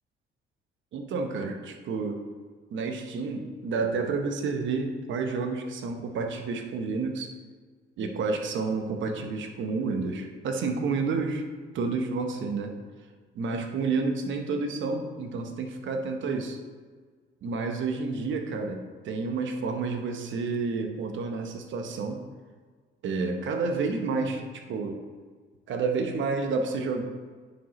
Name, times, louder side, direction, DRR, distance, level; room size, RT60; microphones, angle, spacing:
voice 1, 0.9-2.2 2.7-7.3 8.0-11.4 11.7-12.7 13.3-16.6 17.4-22.2 23.0-25.0 25.7-27.0, right 4 dB, 75° right, 4 dB, 1.0 m, -30 dB
9.9 x 5.1 x 3.1 m, 1.5 s
cardioid pair, 90°, 20 cm